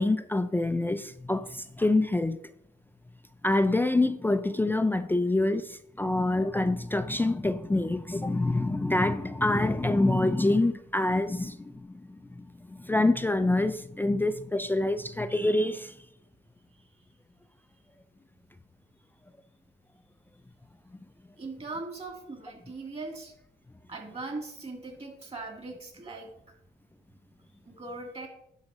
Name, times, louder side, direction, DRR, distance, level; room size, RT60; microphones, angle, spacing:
voice 1, 0.0-2.4 3.4-16.0, left 2 dB, 10° left, 0.4 m, -26 dB
voice 2, 21.4-23.3 23.9-26.3 27.7-28.3, right 3 dB, 30° right, 2.5 m, -39 dB
10.5 x 3.8 x 6.2 m
cardioid pair, 90°, 20 cm